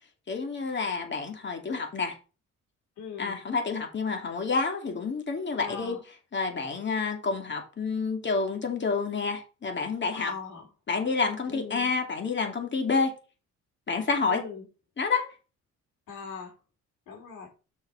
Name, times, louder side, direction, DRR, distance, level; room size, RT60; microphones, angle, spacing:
voice 1, 0.3-2.2 3.2-6.0 6.3-10.3 10.9-13.1 13.9-14.4 15.0-15.3, left 4 dB, 40° left, 2.5 m, -29 dB
voice 2, 3.0-3.3 5.6-6.0 10.1-10.7 11.5-11.9 14.3-14.7 16.1-16.6 17.1-17.5, left 5 dB, 90° left, 3.2 m, -40 dB
6.3 x 5.3 x 5.0 m
cardioid pair, 90°, 30 cm